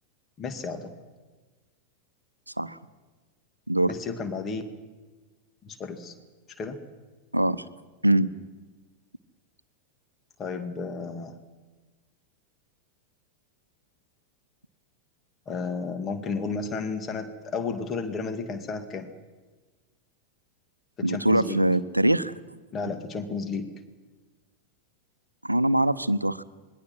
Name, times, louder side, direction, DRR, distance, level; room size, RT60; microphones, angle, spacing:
voice 1, 0.4-0.9 3.8-4.6 5.6-6.1 6.6-6.8 10.4-11.3 15.5-19.1 21.0-21.6 22.7-23.7, left 4 dB, 25° left, 7 dB, 2.3 m, -32 dB
voice 2, 7.3-7.6 8.0-8.3 21.0-22.3 25.4-26.4, right 1 dB, 85° right, 16 dB, 0.7 m, -23 dB
26.5 x 21.5 x 6.2 m, 1.3 s
figure-of-eight pair, 90°, 0 cm